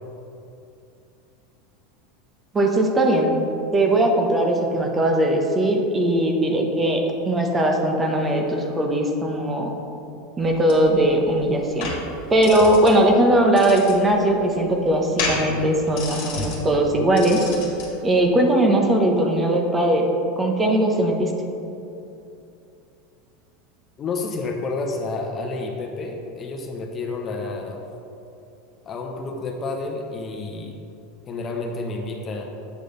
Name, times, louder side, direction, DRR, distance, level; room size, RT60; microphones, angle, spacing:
voice 1, 2.5-3.3 3.7-9.7 10.4-11.9 12.3-17.5 18.0-20.1 20.4-21.3, right 1 dB, 20° right, 2 dB, 1.0 m, -19 dB
sound 1, 10.4-17.9, left 3 dB, 65° left, 1.6 m, -32 dB
voice 2, 24.0-27.8 28.9-30.8 31.3-32.5, left 3 dB, 35° left, 2 dB, 0.9 m, -30 dB
8.1 x 5.0 x 3.9 m, 2.7 s
hypercardioid pair, 90°, 0 cm